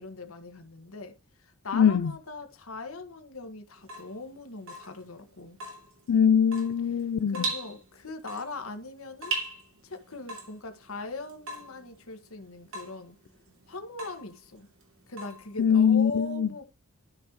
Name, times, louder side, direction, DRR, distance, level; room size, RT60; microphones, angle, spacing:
voice 1, 0.0-5.6 7.3-9.4 9.8-13.2 13.7-14.7 15.1-16.7, left 3 dB, 70° left, 1.5 m, -40 dB
voice 2, 1.7-2.1 6.1-7.4 15.6-16.5, left 7 dB, 85° left, 0.4 m, -22 dB
Water tap faucet / Drip, 3.8-15.9, right 3 dB, 65° right, 2.9 m, -40 dB
12.5 x 5.5 x 3.0 m
head